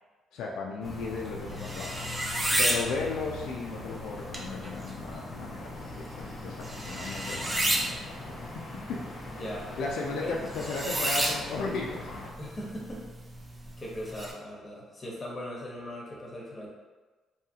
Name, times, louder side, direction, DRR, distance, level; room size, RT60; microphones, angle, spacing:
voice 1, 0.3-2.0 2.6-5.7 6.0-8.5 8.9-9.0 9.3-9.4 9.8-12.1, left 4 dB, 85° left, -2 dB, 0.3 m, -35 dB
sound 1, 0.8-12.3, left 2 dB, 55° left, 0.7 m, -42 dB
sound 2, 0.9-14.3, right 1 dB, 20° right, 0.5 m, -34 dB
voice 2, 9.3-9.7 10.2-10.3 12.4-13.0 13.8-16.7, equal, 30° left, -3 dB, 0.9 m, -39 dB
2.7 x 2.4 x 2.7 m, 1.3 s
cardioid pair, 90°, 0 cm